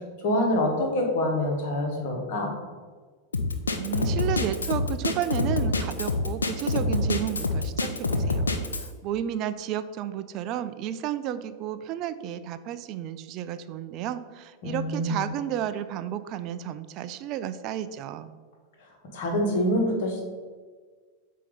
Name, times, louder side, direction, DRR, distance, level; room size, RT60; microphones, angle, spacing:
voice 1, 0.2-2.5 14.6-15.2 19.1-20.2, left 1 dB, 50° left, 1 dB, 1.4 m, -26 dB
Drum kit, 3.3-8.9, left 2 dB, 75° left, 0.6 m, -26 dB
voice 2, 3.8-8.5 8.8-18.3, right 11 dB, 40° right, 12 dB, 0.3 m, -32 dB
8.2 x 2.8 x 5.2 m, 1.5 s
figure-of-eight pair, 90°, 0 cm